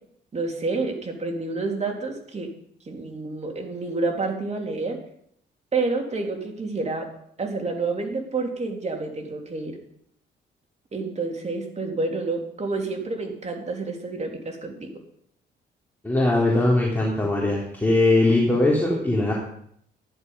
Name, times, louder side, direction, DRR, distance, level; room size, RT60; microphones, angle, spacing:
voice 1, 0.3-2.5 2.8-5.0 5.7-7.1 7.4-9.8 10.9-15.0, right 3 dB, 35° right, 2 dB, 3.3 m, -29 dB
voice 2, 16.0-19.3, left 2 dB, 10° left, -4 dB, 3.5 m, -20 dB
14.0 x 11.0 x 5.5 m, 0.69 s
cardioid pair, 90°, 20 cm